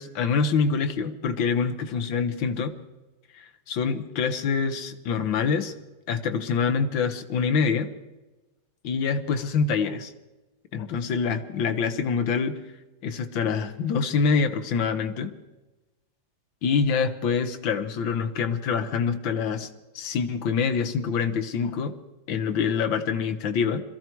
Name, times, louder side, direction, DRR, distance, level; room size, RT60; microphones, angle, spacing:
voice 1, 0.0-2.7 3.7-5.7 6.1-7.9 8.8-10.1 10.7-12.6 13.0-15.3 16.6-19.7 20.0-22.0 22.3-23.8, left 5 dB, 70° left, 9 dB, 1.8 m, -25 dB
22.0 x 14.0 x 4.6 m, 1.1 s
omnidirectional pair, 2.2 m